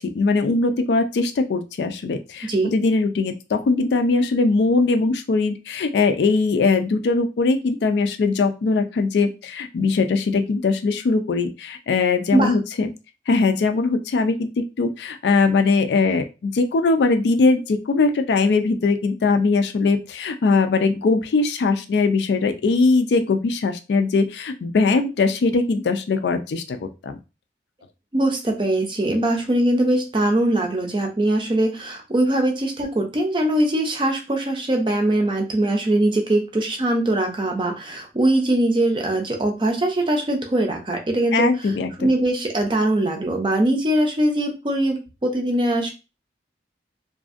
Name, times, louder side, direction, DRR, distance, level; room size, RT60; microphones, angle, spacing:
voice 1, 0.0-12.9 13.3-27.2 41.3-42.1, left 3 dB, 75° left, 7 dB, 0.3 m, -21 dB
voice 2, 2.4-2.7 12.3-12.5 28.1-41.5 42.0-45.9, right 1 dB, 25° right, 2 dB, 0.5 m, -21 dB
2.6 x 2.4 x 2.4 m, 0.29 s
head